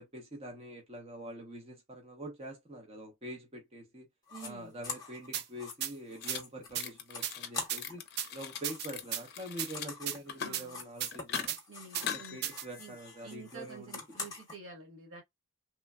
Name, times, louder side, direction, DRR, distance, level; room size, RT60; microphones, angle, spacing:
voice 1, 0.0-4.1 4.4-8.0 8.3-11.6 12.0-13.9, right 1 dB, 30° right, 0.8 m, -45 dB
sound 1, 4.3-4.5 4.8-8.1 8.3-12.2 12.5-14.6, left 4 dB, 20° left, 0.9 m, -45 dB
voice 2, 4.3-4.7 10.4-10.8 11.7-12.5 12.8-13.0 13.2-15.2, right 4 dB, 75° right, 1.1 m, -49 dB
sound 2, 5.3-5.4 5.8-5.9 6.3-6.4 6.7-6.9 7.2-7.8 8.2-8.3 8.6-9.2 9.6-9.7 10.1-10.2 10.5-10.6 11.0-11.6 11.9-12.1 12.4-12.6, right 10 dB, 50° right, 0.3 m, -35 dB
sound 3, 6.2-6.4 6.7-7.5 7.8-9.9 10.2-10.7 11.1-11.5 11.9-13.4, left 7 dB, 50° left, 0.5 m, -41 dB
3.2 x 2.2 x 2.2 m
head